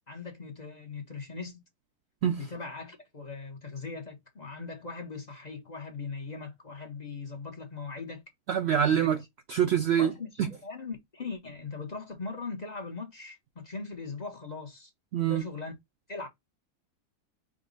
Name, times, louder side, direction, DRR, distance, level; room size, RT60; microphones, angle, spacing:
voice 1, 0.1-1.6 2.4-8.2 8.9-9.1 10.0-14.9 15.2-15.7 16.1-16.3, left 4 dB, 35° left, 0.8 m, -40 dB
voice 2, 8.5-9.2 9.5-10.1 10.4-10.5 15.1-15.4, right 9 dB, 90° right, 0.5 m, -25 dB
4.9 x 2.2 x 3.8 m
omnidirectional pair, 1.7 m